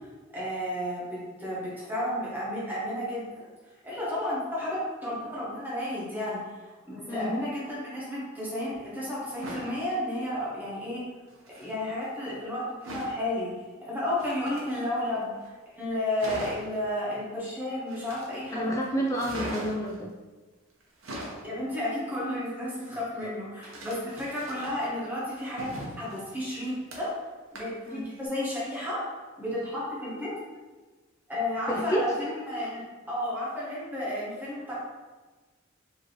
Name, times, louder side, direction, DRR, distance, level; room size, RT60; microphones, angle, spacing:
voice 1, 0.3-3.5 3.8-6.4 6.8-11.0 11.5-12.6 12.9-13.5 13.8-18.8 21.4-25.7 26.0-27.1 27.5-29.0 29.4-30.3 31.3-32.8 33.1-34.7, left 1 dB, 10° right, -7 dB, 1.3 m, -32 dB
sound 1, 9.2-9.7 11.3-11.7 12.8-13.2 14.1-15.1 15.5-15.6 15.8-15.9 16.2-16.8 17.9-18.5 19.1-19.9 20.8-21.5 23.6-24.9 25.3-27.2 27.5-27.9 28.2-28.3, right 1 dB, 85° right, 0.9 m, -40 dB
voice 2, 18.5-20.1 23.2-23.3 27.9-28.0 31.7-32.1, right 1 dB, 15° left, -2 dB, 0.3 m, -29 dB
4.7 x 2.9 x 2.9 m, 1.3 s
head